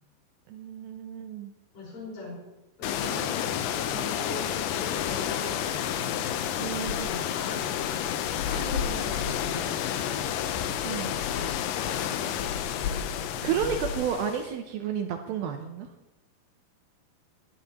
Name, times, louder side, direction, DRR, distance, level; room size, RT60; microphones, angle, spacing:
voice 1, 0.5-1.5 3.0-3.3 3.9-4.1 6.6-7.1 10.8-11.1 13.4-15.9, right 8 dB, 80° right, 5 dB, 2.3 m, -32 dB
voice 2, 1.7-2.4 2.8-6.3 6.8-9.9 11.8-13.8, left 2 dB, 60° left, -5 dB, 6.3 m, -41 dB
sound 1, 2.8-14.5, left 9 dB, 85° left, 1.9 m, -30 dB
18.5 x 11.0 x 2.9 m, 1.0 s
omnidirectional pair, 4.7 m